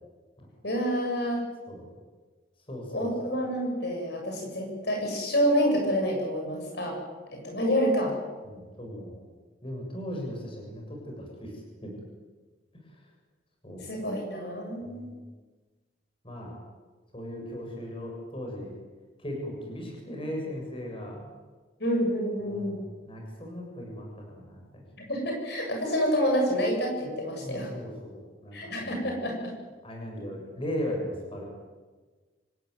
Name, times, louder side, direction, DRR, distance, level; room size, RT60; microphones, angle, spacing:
voice 1, 0.6-1.4 2.9-7.0 7.3-8.1 13.8-15.1 21.8-22.8 25.0-27.7 28.5-29.5, equal, 65° left, 1 dB, 7.2 m, -28 dB
voice 2, 2.7-3.1 8.4-9.2 9.6-11.9 13.6-13.9 14.8-15.1 16.2-16.5 17.1-18.7 19.2-21.2 22.4-24.8 27.4-29.1 29.8-31.5, equal, 30° left, 0 dB, 6.9 m, -37 dB
26.0 x 15.5 x 9.6 m, 1.3 s
head